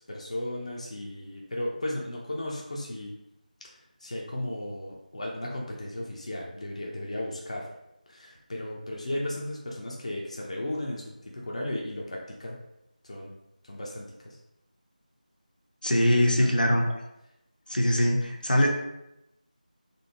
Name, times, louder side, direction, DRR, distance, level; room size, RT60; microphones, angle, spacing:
voice 1, 0.0-3.1 4.0-7.7 8.1-12.6 13.0-13.3 13.6-14.4 16.4-16.6, left 1 dB, 50° left, -2 dB, 0.6 m, -35 dB
voice 2, 15.8-16.8 17.7-18.7, equal, 90° left, 0 dB, 0.8 m, -22 dB
3.3 x 2.6 x 2.8 m, 0.85 s
figure-of-eight pair, 170°, 5 cm